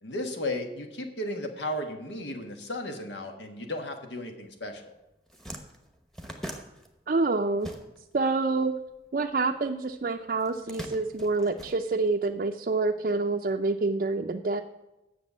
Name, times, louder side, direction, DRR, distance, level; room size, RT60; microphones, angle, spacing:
voice 1, 0.0-4.9, left 1 dB, 90° left, 5 dB, 1.4 m, -34 dB
sound 1, 4.7-4.8 5.1-8.3 8.5-9.7 10.4-12.4, right 1 dB, ahead, 0.9 m, -42 dB
voice 2, 7.1-7.7 8.1-8.7 9.1-14.6, right 3 dB, 50° right, 3 dB, 0.4 m, -27 dB
8.0 x 6.7 x 8.0 m, 0.98 s
head